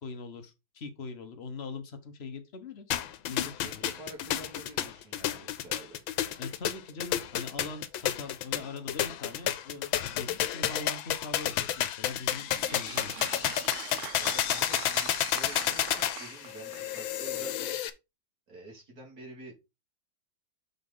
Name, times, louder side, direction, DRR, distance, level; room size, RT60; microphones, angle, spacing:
voice 1, 0.0-3.0 3.3-3.9 6.4-13.3, left 4 dB, 40° left, 1.2 m, -42 dB
sound 1, 2.9-17.9, left 11 dB, 90° left, 1.5 m, -31 dB
voice 2, 3.6-6.0 8.2-8.3 14.1-17.8 18.5-19.5, right 2 dB, 50° right, 3.0 m, -48 dB
Applause, 12.2-17.1, right 9 dB, 85° right, 0.6 m, -43 dB
6.6 x 5.4 x 4.0 m
omnidirectional pair, 2.1 m